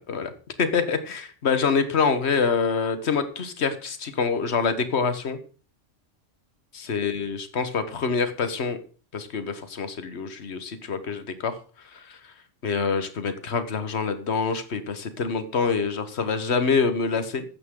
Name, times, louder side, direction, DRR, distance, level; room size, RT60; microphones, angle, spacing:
voice 1, 0.6-5.4 6.7-8.8 9.1-11.6 11.8-12.2 12.6-17.4, left 5 dB, 60° left, 10 dB, 1.6 m, -26 dB
14.5 x 9.6 x 3.8 m, 0.38 s
omnidirectional pair, 1.3 m